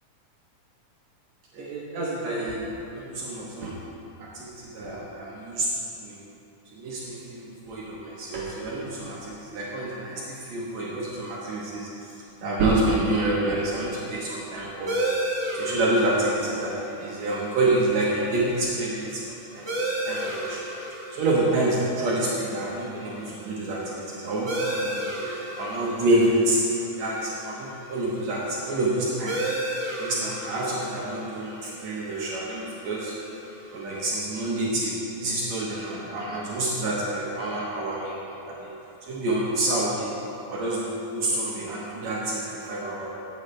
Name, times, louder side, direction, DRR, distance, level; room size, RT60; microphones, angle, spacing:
voice 1, 1.5-2.6 2.9-3.7 4.2-5.7 6.0-6.2 6.7-11.9 12.4-15.0 15.6-20.6 21.1-25.1 25.6-29.4 30.0-33.1 33.7-38.7 39.0-40.1 40.5-40.8 41.1-43.1, right 1 dB, 70° right, -5 dB, 2.3 m, -27 dB
sound 1, 14.9-34.0, right 1 dB, 35° right, 1.1 m, -35 dB
14.0 x 9.1 x 3.2 m, 2.8 s
omnidirectional pair, 3.5 m